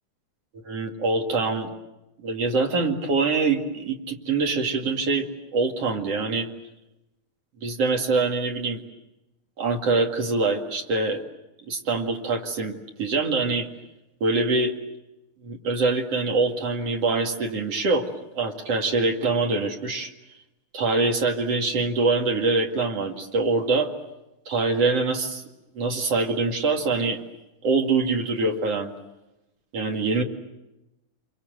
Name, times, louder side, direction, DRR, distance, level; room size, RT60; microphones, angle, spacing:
voice 1, 0.7-1.7 2.2-6.5 7.6-8.8 9.6-11.2 11.7-13.7 14.2-14.7 15.4-20.1 20.7-23.9 24.5-25.4 25.7-27.2 27.6-28.9 29.7-30.2, right 3 dB, 50° right, 2 dB, 2.9 m, -24 dB
29.0 x 23.5 x 7.9 m, 0.96 s
omnidirectional pair, 3.8 m